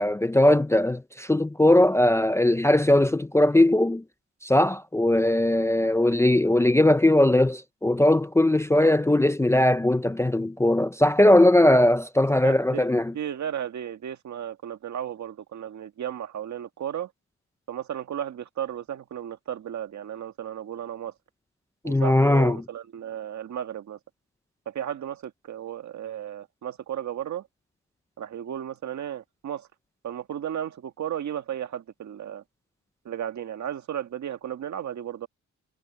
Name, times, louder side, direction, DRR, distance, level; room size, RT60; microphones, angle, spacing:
voice 1, 0.0-4.0 4.4-13.1 21.8-22.6, left 1 dB, 10° left, 0.5 m, -20 dB
voice 2, 12.4-12.9 13.1-17.1 17.7-21.1 21.8-24.0 24.7-27.5 28.2-29.7 30.0-32.4 33.1-35.3, right 10 dB, 65° right, 1.7 m, -34 dB
wide cardioid pair, 135°, 31 cm